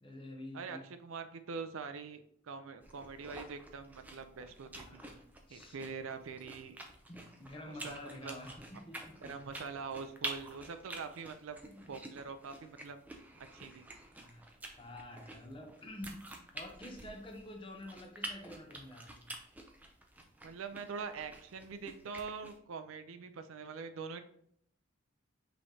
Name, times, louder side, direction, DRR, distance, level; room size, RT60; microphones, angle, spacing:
voice 1, 0.0-0.8 4.9-5.8 7.1-9.3 11.7-11.9 14.2-14.4 14.8-19.3, left 1 dB, 25° left, 2 dB, 0.7 m, -48 dB
voice 2, 0.5-5.0 5.5-6.8 7.7-8.4 9.2-11.6 11.9-13.0 13.4-13.9 20.4-24.2, right 5 dB, 75° right, 9 dB, 0.4 m, -44 dB
sound 1, 2.8-22.6, right 1 dB, 10° right, 0.4 m, -49 dB
5.4 x 3.2 x 2.7 m, 0.66 s
head